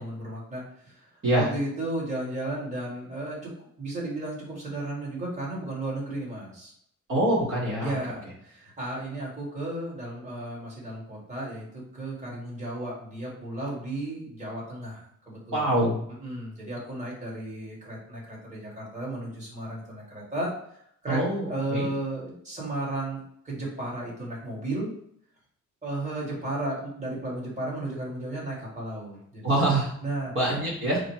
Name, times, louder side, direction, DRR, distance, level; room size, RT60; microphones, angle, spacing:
voice 1, 0.0-1.1 1.4-6.7 7.8-15.7 16.2-20.5 21.0-21.2 21.5-24.9 25.8-29.4 30.0-30.3, right 1 dB, 25° right, -5 dB, 1.6 m, -34 dB
voice 2, 7.1-8.0 15.5-16.0 21.1-21.9 29.4-29.9 30.3-31.0, right 1 dB, 40° right, -5 dB, 1.4 m, -24 dB
4.8 x 2.2 x 4.5 m, 0.69 s
cardioid pair, 160°, 31 cm